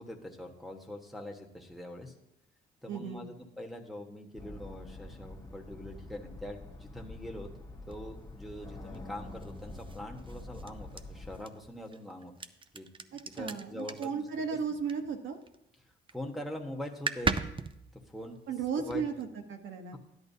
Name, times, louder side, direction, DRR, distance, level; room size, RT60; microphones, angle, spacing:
voice 1, 0.0-2.1 2.8-7.5 7.9-12.3 12.7-14.6 16.1-17.3 17.9-18.4 18.8-19.0, left 1 dB, ahead, 0 dB, 1.4 m, -43 dB
voice 2, 2.9-3.3 13.3-15.4 18.5-20.0, right 6 dB, 75° right, 4 dB, 1.2 m, -35 dB
sound 1, 4.4-11.4, left 2 dB, 20° left, 1.4 m, -46 dB
sound 2, 7.9-15.6 15.9-16.3 16.6-16.7 16.9-19.2, right 4 dB, 25° right, 0.6 m, -39 dB
13.0 x 11.0 x 2.8 m, 0.84 s
cardioid pair, 90°, 20 cm